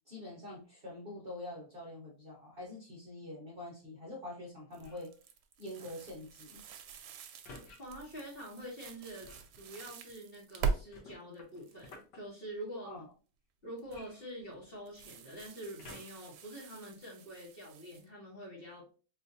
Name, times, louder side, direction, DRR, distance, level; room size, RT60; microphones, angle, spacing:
voice 1, 0.1-5.1 5.6-6.6 12.8-13.1, left 1 dB, 45° right, -4 dB, 0.8 m, -45 dB
sound 1, 4.7-5.1 7.4-7.8 9.2-9.5 10.9-12.2 13.9-14.8 15.8-16.3 17.0-17.1, left 2 dB, 75° left, 1.5 m, -53 dB
sound 2, 4.7-10.8 11.3-12.0 13.8-14.1 14.9-18.0, right 5 dB, 75° right, 1.1 m, -42 dB
voice 2, 7.8-9.3 9.6-12.9 13.6-19.0, equal, 40° left, -3 dB, 1.2 m, -46 dB
4.3 x 2.5 x 2.6 m, 0.36 s
omnidirectional pair, 1.8 m